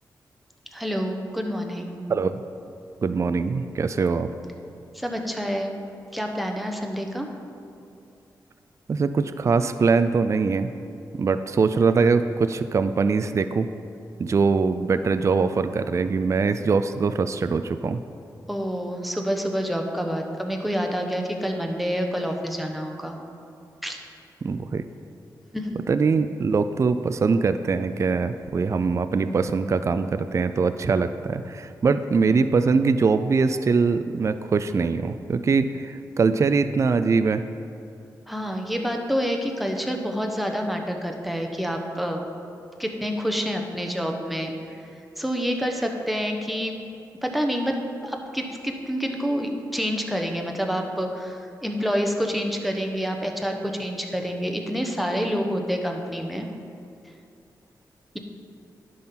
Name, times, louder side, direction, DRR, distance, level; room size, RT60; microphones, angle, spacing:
voice 1, 0.7-2.0 4.9-5.8 6.1-7.3 18.5-23.2 23.8-24.0 25.5-25.8 38.3-42.3 42.8-44.5 45.2-46.7 47.2-56.5, equal, ahead, 2 dB, 1.0 m, -28 dB
voice 2, 2.1-2.4 3.0-4.3 8.9-10.7 11.1-13.7 14.2-18.0 24.4-24.8 25.9-37.4, right 4 dB, 45° right, 10 dB, 0.3 m, -22 dB
10.5 x 3.8 x 5.8 m, 2.6 s
cardioid pair, 60°, 7 cm